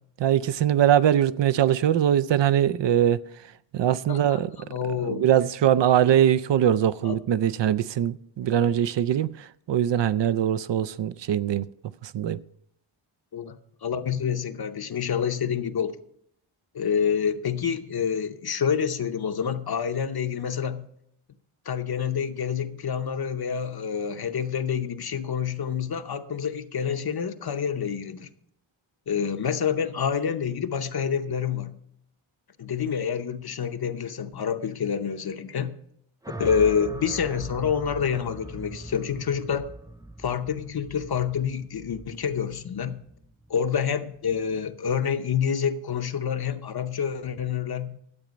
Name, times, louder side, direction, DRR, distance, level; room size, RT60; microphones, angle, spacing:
voice 1, 0.2-3.5 3.7-4.5 5.0-11.7 12.0-12.4, right 10 dB, 60° right, 0.5 m, -22 dB
voice 2, 4.7-5.2 7.0-7.1 13.3-16.0 16.7-20.9 21.7-28.3 29.1-31.7 32.6-35.7 36.4-39.7 40.2-43.0 43.5-48.0, left 7 dB, 50° left, 0.8 m, -27 dB
sound 1, 36.2-44.5, right 1 dB, 10° right, 0.3 m, -41 dB
12.0 x 8.4 x 5.1 m
wide cardioid pair, 155°, 49 cm